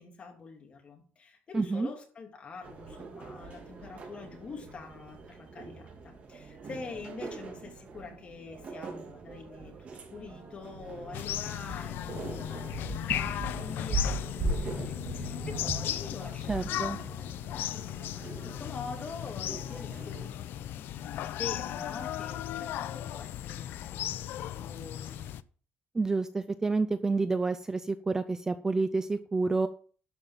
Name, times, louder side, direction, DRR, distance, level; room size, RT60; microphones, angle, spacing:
voice 1, 0.0-25.3, left 4 dB, 30° left, 2 dB, 2.9 m, -45 dB
voice 2, 1.5-1.9 16.5-17.0 25.9-29.7, right 3 dB, 15° right, 11 dB, 0.5 m, -29 dB
sound 1, 2.6-20.3, right 3 dB, 35° right, 2.4 m, -40 dB
sound 2, 11.1-25.4, left 12 dB, 65° left, 0.5 m, -36 dB
12.0 x 5.7 x 7.4 m, 0.42 s
cardioid pair, 165°, 4 cm